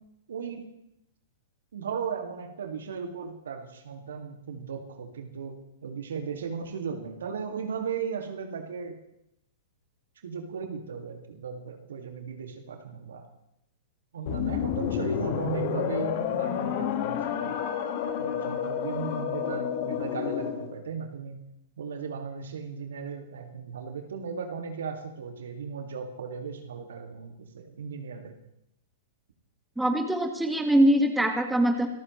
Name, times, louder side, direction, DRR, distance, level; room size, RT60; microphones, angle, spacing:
voice 1, 0.3-0.7 1.7-5.5 5.8-9.0 10.2-13.3 14.1-17.6 18.2-21.4 21.8-28.4, right 6 dB, 70° right, 4 dB, 2.1 m, -36 dB
sound 1, 14.3-20.7, left 9 dB, 50° left, 1.8 m, -30 dB
voice 2, 29.8-31.9, right 1 dB, 5° right, 4 dB, 1.7 m, -23 dB
25.5 x 14.0 x 3.2 m, 0.80 s
hypercardioid pair, 115°, 0 cm